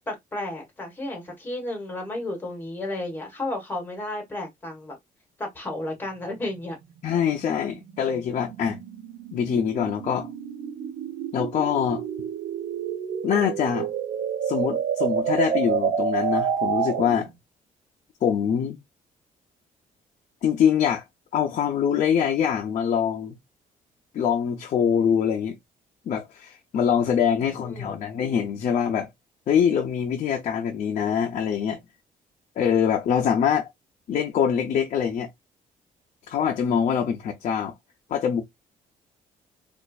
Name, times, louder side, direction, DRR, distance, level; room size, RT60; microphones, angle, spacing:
voice 1, 0.0-5.0 5.4-6.8 27.4-28.0, left 1 dB, 15° left, 1.3 m, -33 dB
sound 1, 6.0-17.3, right 7 dB, 75° right, 0.9 m, -29 dB
voice 2, 7.0-8.8 9.3-10.3 11.3-12.0 13.2-13.9 14.4-17.3 18.2-18.8 20.4-21.0 21.3-23.4 24.1-25.6 26.1-29.1 29.5-31.8 32.6-33.7 34.1-35.3 36.3-37.7 38.1-38.4, left 8 dB, 55° left, 0.6 m, -24 dB
4.1 x 2.5 x 2.3 m
cardioid pair, 160°, 15 cm